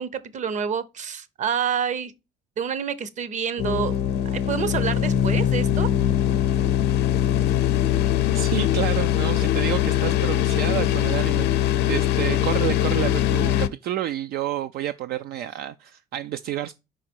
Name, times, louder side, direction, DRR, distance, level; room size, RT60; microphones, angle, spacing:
voice 1, 0.0-2.1 2.6-3.9 4.3-5.9, right 7 dB, 45° right, 0.9 m, -28 dB
sound 1, 3.6-13.7, left 11 dB, 80° left, 0.6 m, -22 dB
voice 2, 8.3-16.7, right 12 dB, 65° right, 0.4 m, -29 dB
5.2 x 4.9 x 4.3 m
cardioid pair, 110°, 17 cm